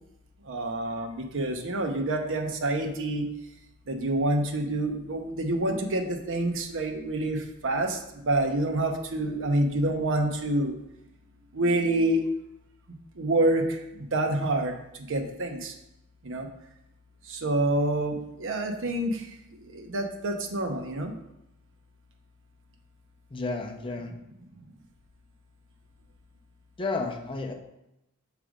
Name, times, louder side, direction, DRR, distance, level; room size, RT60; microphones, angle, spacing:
voice 1, 0.4-3.3 3.9-10.8 11.5-12.2 13.2-15.7 16.2-16.5 17.3-19.3 19.6-21.1, right 1 dB, 60° right, 4 dB, 0.7 m, -27 dB
voice 2, 23.3-24.1 26.8-27.5, left 3 dB, 25° left, 4 dB, 0.5 m, -31 dB
6.1 x 3.3 x 4.9 m, 0.86 s
head